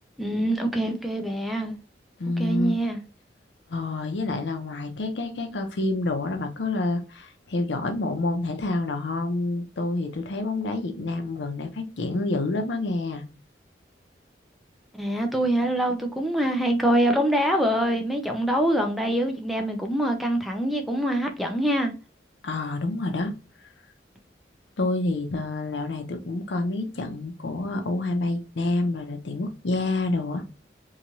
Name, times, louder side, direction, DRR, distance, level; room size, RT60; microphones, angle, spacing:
voice 1, 0.2-1.7 2.4-3.0 15.0-21.9, right 1 dB, ahead, 0.4 m, -24 dB
voice 2, 2.2-2.8 3.7-13.2 22.4-23.3 24.8-30.4, left 2 dB, 85° left, 0.6 m, -28 dB
3.0 x 2.3 x 2.6 m
head